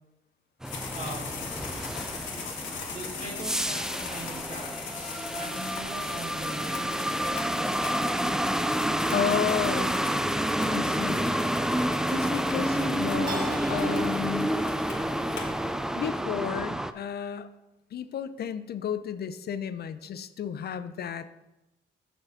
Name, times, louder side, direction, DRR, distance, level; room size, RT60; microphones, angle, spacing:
sound 1, 0.6-16.9, right 1 dB, 5° right, 0.4 m, -29 dB
sound 2, 0.7-16.1, left 5 dB, 70° left, 1.6 m, -40 dB
voice 1, 0.9-1.5 2.9-7.2, right 2 dB, 40° right, -4 dB, 2.2 m, -41 dB
voice 2, 9.1-10.0 10.6-11.3 12.1-14.5 15.9-17.5 17.9-21.5, left 8 dB, 55° left, 13 dB, 0.5 m, -32 dB
Keyboard (musical), 13.3-16.1, right 2 dB, 25° right, 2.0 m, -43 dB
6.5 x 4.8 x 6.4 m, 0.99 s
cardioid pair, 90°, 20 cm